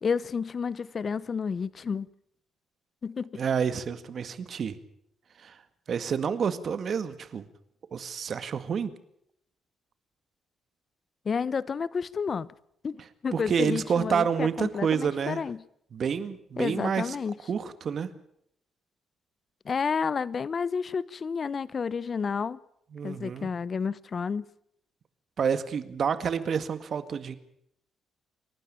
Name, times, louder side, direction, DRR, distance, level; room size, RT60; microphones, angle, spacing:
voice 1, 0.0-2.1 3.0-3.4 11.2-12.5 12.8-15.6 16.6-17.3 19.6-22.6 23.0-24.4, left 5 dB, 45° left, 0.8 m, -30 dB
voice 2, 3.3-4.8 5.4-5.6 5.9-7.4 7.9-8.9 13.3-15.4 15.9-17.2 17.5-18.1 22.9-23.5 25.4-27.4, right 7 dB, 55° right, 2.0 m, -29 dB
28.5 x 12.0 x 8.9 m
cardioid pair, 90°, 0 cm